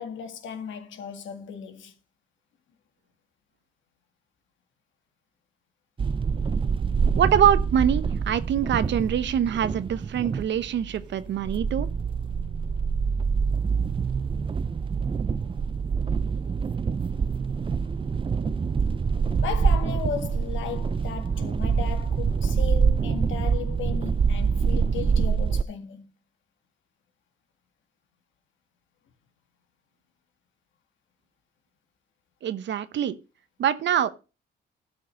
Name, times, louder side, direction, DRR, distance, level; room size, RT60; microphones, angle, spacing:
voice 1, 0.0-1.9 19.4-26.1, left 7 dB, 75° left, 1.9 m, -36 dB
sound 1, 6.0-25.6, right 5 dB, 25° right, 0.5 m, -26 dB
voice 2, 7.2-11.9 32.4-33.2 33.6-34.1, right 9 dB, 65° right, 1.0 m, -24 dB
12.0 x 5.1 x 5.3 m
cardioid pair, 90°, 20 cm